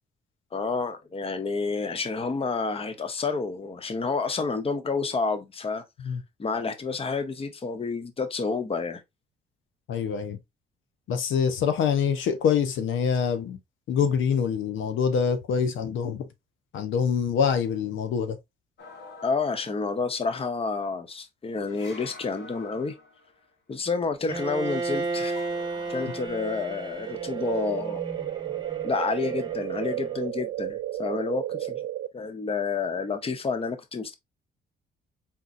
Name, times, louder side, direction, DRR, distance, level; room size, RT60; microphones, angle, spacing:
voice 1, 0.5-5.8 6.4-9.0 19.2-22.9 23.7-25.4 25.9-28.0 28.8-31.8 32.1-34.1, left 4 dB, 30° left, 0.8 m, -29 dB
voice 2, 9.9-10.4 11.1-13.6 13.9-16.2 16.7-18.4, left 7 dB, 80° left, 0.8 m, -25 dB
sound 1, 18.8-20.1 21.7-23.5 25.1-26.3, left 3 dB, 60° left, 1.4 m, -47 dB
Bowed string instrument, 24.3-30.3, right 3 dB, 20° right, 1.0 m, -34 dB
sound 2, 27.1-32.1, right 13 dB, 60° right, 0.4 m, -32 dB
4.2 x 3.8 x 2.5 m
cardioid pair, 90°, 20 cm